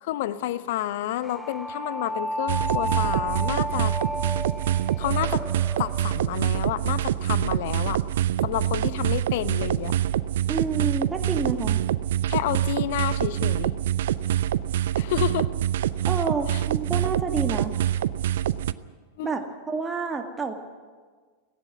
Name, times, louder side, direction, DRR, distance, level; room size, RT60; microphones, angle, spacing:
voice 1, 0.0-3.9 5.0-5.4 5.8-8.0 8.4-10.0 12.3-13.7 15.0-15.5 16.5-16.6 19.2-19.3, left 13 dB, 50° left, 15 dB, 0.8 m, -29 dB
sound 1, 1.2-6.4, equal, ahead, 0.5 m, -32 dB
sound 2, 2.5-18.7, right 11 dB, 60° right, 0.5 m, -25 dB
voice 2, 10.5-11.8 16.1-17.7 19.2-20.5, right 4 dB, 15° right, 4 dB, 2.1 m, -29 dB
17.5 x 16.5 x 9.3 m, 1.5 s
figure-of-eight pair, 90°, 0 cm